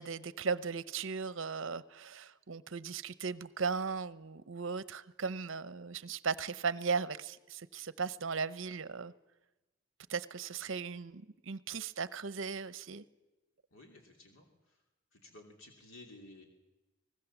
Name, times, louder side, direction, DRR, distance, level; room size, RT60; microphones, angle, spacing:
voice 1, 0.0-9.1 10.1-13.0, right 5 dB, 65° right, 0.8 m, -37 dB
voice 2, 13.7-14.8 15.1-16.5, left 2 dB, 75° left, 3.0 m, -55 dB
23.5 x 19.5 x 7.2 m
head